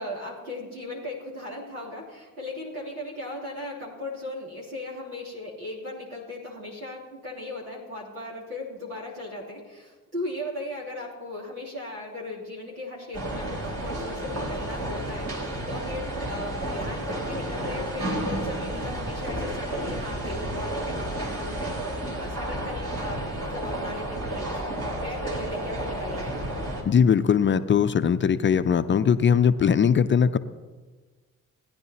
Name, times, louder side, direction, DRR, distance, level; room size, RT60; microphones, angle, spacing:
voice 1, 0.0-26.5, left 1 dB, 85° right, -6 dB, 3.0 m, -37 dB
sound 1, 13.1-26.8, right 1 dB, 50° right, 3.8 m, -31 dB
voice 2, 26.9-30.4, left 7 dB, 30° left, 12 dB, 0.5 m, -20 dB
19.0 x 10.0 x 2.8 m, 1.4 s
figure-of-eight pair, 45°, 42 cm